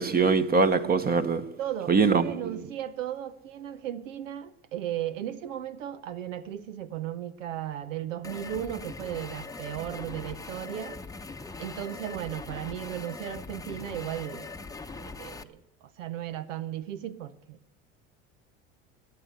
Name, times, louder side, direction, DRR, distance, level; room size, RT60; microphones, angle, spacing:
voice 1, 0.0-1.6 1.9-2.5, right 4 dB, 25° right, 1.0 m, -23 dB
voice 2, 1.6-11.0 11.6-14.7 15.0-17.6, right 11 dB, 85° right, 0.9 m, -36 dB
sound 1, 8.2-15.4, left 4 dB, 10° left, 0.8 m, -41 dB
20.0 x 8.2 x 8.1 m
hypercardioid pair, 85°, 37 cm